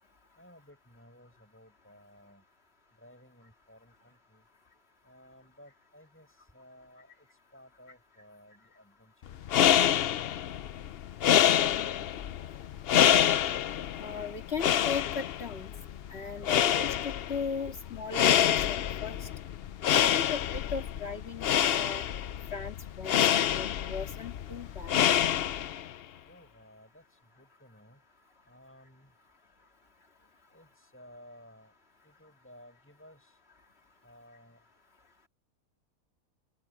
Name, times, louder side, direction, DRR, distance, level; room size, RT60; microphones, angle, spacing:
voice 1, 0.4-2.4 3.0-4.5 5.0-9.4 26.2-28.0 28.5-29.1 30.5-31.8 32.0-33.4 34.0-34.6, equal, 10° left, 7.7 m, -56 dB
sound 1, 9.3-25.9, left 10 dB, 60° left, 0.6 m, -27 dB
voice 2, 14.0-15.7 16.1-19.3 19.9-22.0 22.5-25.0, left 5 dB, 45° left, 2.3 m, -37 dB
open air
omnidirectional pair, 1.6 m